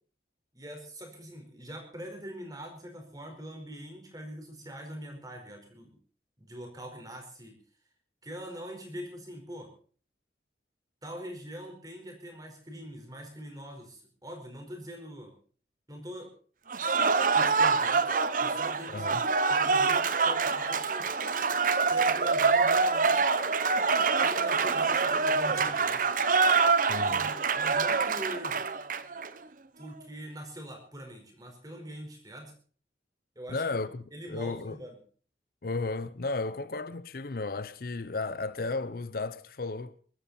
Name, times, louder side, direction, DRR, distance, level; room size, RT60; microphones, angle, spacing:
voice 1, 0.5-6.0 6.4-7.6 8.2-9.7 11.0-15.3 15.9-16.3 17.3-18.1 18.4-19.2 19.5-21.1 21.9-23.2 24.2-26.1 27.0-28.6 29.8-32.5 33.3-33.8 34.1-35.0, equal, 20° right, 4.8 m, -43 dB
Cheering / Applause, 16.7-29.3, right 4 dB, 50° right, 0.9 m, -25 dB
voice 2, 18.9-19.2 26.9-27.3 33.5-34.8 35.6-40.0, left 3 dB, 55° left, 0.7 m, -34 dB
23.0 x 12.5 x 4.3 m
head